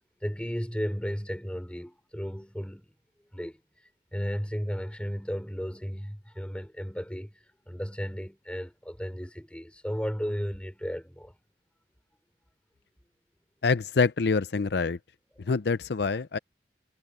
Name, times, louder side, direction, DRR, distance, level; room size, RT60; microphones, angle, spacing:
voice 1, 0.2-2.9 3.3-3.6 4.1-7.4 7.6-11.3, equal, 5° left, 4.5 m, -34 dB
voice 2, 13.6-15.0 15.5-16.4, left 4 dB, 70° left, 0.5 m, -25 dB
head